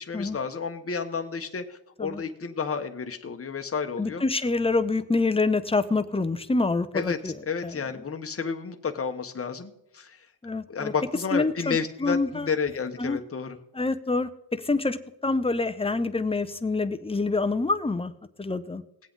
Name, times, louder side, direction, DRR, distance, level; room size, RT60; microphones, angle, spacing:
voice 1, 0.0-4.2 6.9-10.2 10.7-13.6, left 5 dB, 30° left, 6 dB, 1.0 m, -31 dB
voice 2, 4.0-7.3 7.6-7.8 10.4-10.9 11.3-12.5 13.0-13.2 13.7-14.3 14.6-18.1 18.4-18.8, left 3 dB, 15° left, 11 dB, 0.6 m, -26 dB
19.5 x 8.1 x 3.9 m, 0.82 s
wide cardioid pair, 115°, 46 cm